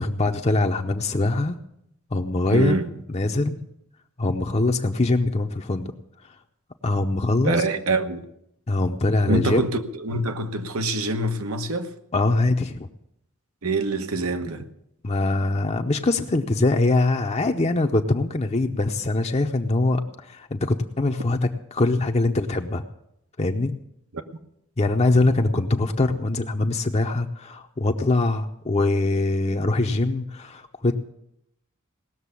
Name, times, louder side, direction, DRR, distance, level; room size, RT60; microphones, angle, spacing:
voice 1, 0.0-1.6 2.1-2.8 3.1-3.6 4.2-5.9 6.8-7.6 8.7-9.6 12.1-12.9 15.0-22.8 23.4-23.7 24.8-30.9, left 2 dB, 30° left, 0.6 m, -23 dB
voice 2, 2.5-2.9 7.4-8.2 9.3-11.9 13.6-14.7, right 2 dB, 80° right, 1.1 m, -25 dB
18.0 x 6.8 x 8.3 m
head